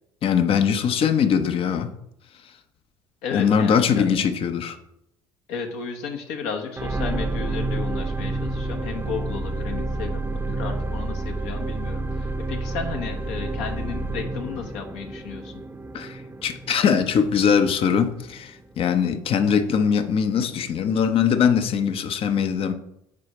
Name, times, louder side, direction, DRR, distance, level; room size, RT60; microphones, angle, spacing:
voice 1, 0.2-1.9 3.3-4.8 15.9-22.7, left 7 dB, 50° left, 0.7 m, -21 dB
voice 2, 3.2-4.1 5.5-15.6, left 6 dB, 70° left, 1.1 m, -33 dB
sound 1, 6.8-19.1 19.7-19.8, right 2 dB, 15° right, 0.7 m, -30 dB
4.9 x 4.8 x 6.1 m
hypercardioid pair, 55°, 12 cm